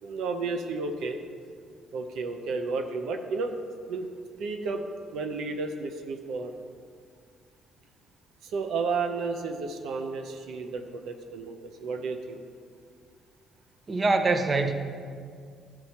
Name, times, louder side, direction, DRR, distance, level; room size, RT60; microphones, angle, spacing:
voice 1, 0.0-1.2 1.9-3.6 3.9-4.1 4.4-4.8 5.1-6.5 8.4-12.4, right 4 dB, 75° right, 5 dB, 0.6 m, -32 dB
voice 2, 13.9-14.7, right 3 dB, 35° right, 7 dB, 0.6 m, -24 dB
12.5 x 4.5 x 4.3 m, 2.1 s
cardioid pair, 80°, 0 cm